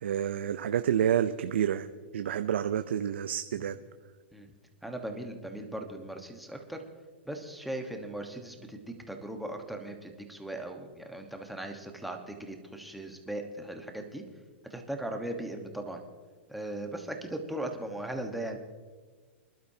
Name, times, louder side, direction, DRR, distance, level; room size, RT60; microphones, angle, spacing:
voice 1, 0.0-1.9 2.1-3.8, right 9 dB, 85° right, 9 dB, 0.6 m, -29 dB
voice 2, 4.8-6.8 7.2-14.2 14.7-16.0 16.5-18.6, right 1 dB, ahead, 3 dB, 1.3 m, -38 dB
25.5 x 12.0 x 2.8 m, 1.4 s
hypercardioid pair, 145°, 6 cm